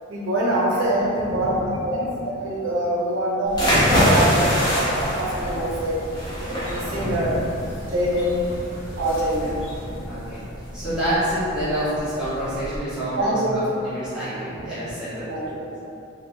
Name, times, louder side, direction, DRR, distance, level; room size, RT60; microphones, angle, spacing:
voice 1, 0.1-6.0 6.5-7.4 7.9-8.3 9.0-9.5 13.2-13.6 15.3-15.8, right 1 dB, 80° right, -5 dB, 0.8 m, -24 dB
voice 2, 1.2-1.8 4.0-4.5 6.9-7.4 7.7-7.8 9.4-10.4 10.7-15.3, equal, 5° right, -14 dB, 1.1 m, -28 dB
sound 1, 3.5-9.8, equal, 70° left, 1.1 m, -36 dB
sound 2, 3.5-12.8, equal, 20° left, 0.7 m, -25 dB
3.5 x 2.4 x 2.7 m, 2.7 s
head